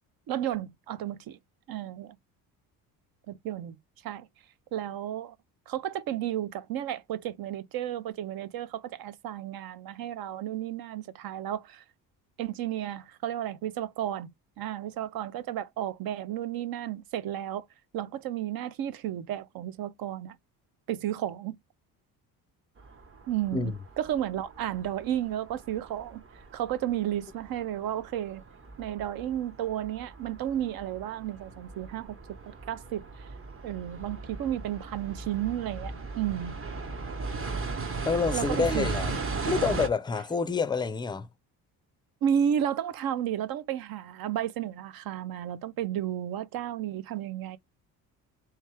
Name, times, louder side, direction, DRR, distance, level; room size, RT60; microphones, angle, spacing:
voice 1, 0.3-1.4 1.7-2.2 3.3-3.7 4.0-4.3 4.7-5.4 5.7-11.8 12.4-14.3 14.6-17.7 17.9-20.4 20.9-21.6 23.3-26.2 26.5-28.4 28.8-32.2 32.5-33.0 33.6-36.6 38.3-38.9 42.2-47.6, right 11 dB, 65° right, 0.6 m, -32 dB
sound 1, 22.8-39.9, right 3 dB, 35° right, 1.0 m, -37 dB
voice 2, 38.1-39.1 39.5-41.3, left 5 dB, 10° left, 0.4 m, -28 dB
3.3 x 3.3 x 3.3 m
supercardioid pair, 80°, 39 cm